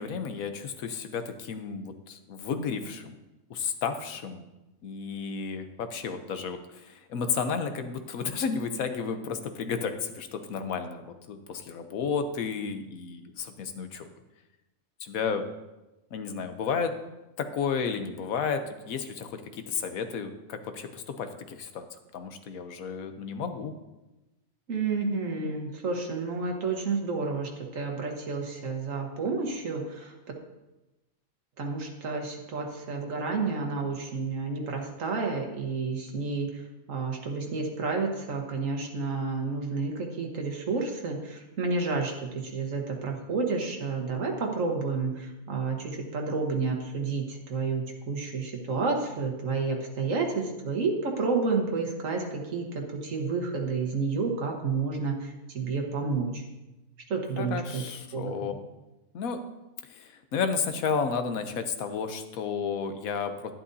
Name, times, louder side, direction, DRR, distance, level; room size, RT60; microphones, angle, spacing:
voice 1, 0.0-3.2 3.5-4.4 4.8-14.0 15.0-15.4 16.1-16.9 17.4-21.9 22.1-23.7 57.4-58.5 59.1-59.4 59.9-63.5, left 6 dB, 85° left, 8 dB, 1.2 m, -32 dB
voice 2, 24.7-30.1 31.6-36.5 36.9-56.4 57.1-57.8 58.1-58.5, right 4 dB, 70° right, 2 dB, 1.7 m, -30 dB
11.0 x 10.5 x 2.7 m, 1.0 s
omnidirectional pair, 1.4 m